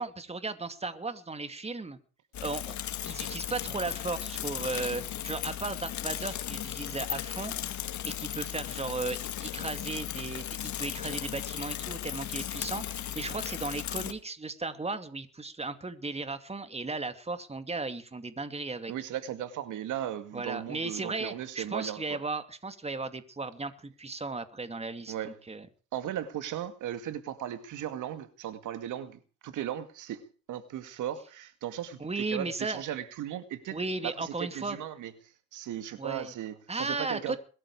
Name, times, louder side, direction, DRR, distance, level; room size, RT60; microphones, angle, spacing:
voice 1, 0.0-2.0 2.4-2.8 3.1-7.5 8.0-18.9 20.3-25.7 32.0-32.8 33.7-34.8 36.0-36.3 36.7-37.4, right 3 dB, 20° right, 2.5 m, -36 dB
Bicycle / Mechanisms, 2.3-14.1, left 11 dB, 70° left, 2.2 m, -36 dB
voice 2, 18.9-22.2 25.1-25.4 25.9-35.1 35.5-37.4, right 11 dB, 85° right, 2.3 m, -37 dB
21.5 x 13.5 x 4.9 m
cardioid pair, 90°, 30 cm